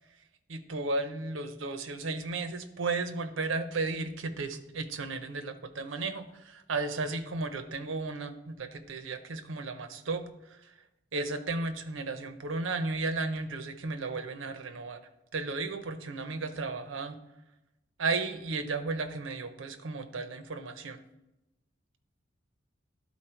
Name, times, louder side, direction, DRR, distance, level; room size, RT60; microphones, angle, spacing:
voice 1, 0.5-10.6 11.1-15.0 15.3-17.2 18.0-21.0, right 3 dB, 85° right, 10 dB, 0.7 m, -34 dB
11.5 x 4.1 x 4.4 m, 0.95 s
head